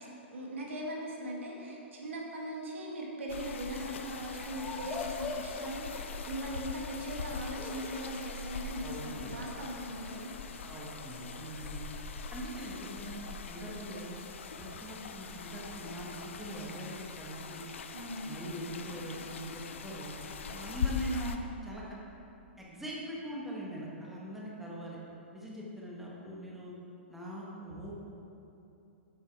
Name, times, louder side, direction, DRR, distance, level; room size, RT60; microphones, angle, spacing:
voice 1, 0.3-10.3 17.9-18.4 20.5-20.7, equal, 80° right, -2 dB, 1.9 m, -40 dB
sound 1, 3.3-21.4, left 5 dB, 75° left, 0.6 m, -42 dB
sound 2, 4.5-11.0, left 3 dB, 15° left, 0.8 m, -45 dB
voice 2, 8.8-9.4 10.6-11.9 12.3-14.2 14.6-17.6 18.2-20.2 20.5-21.8 22.6-25.0 25.3-26.7 27.1-27.9, equal, 5° right, -5 dB, 1.4 m, -42 dB
7.7 x 7.5 x 4.7 m, 2.8 s
hypercardioid pair, 135°, 7 cm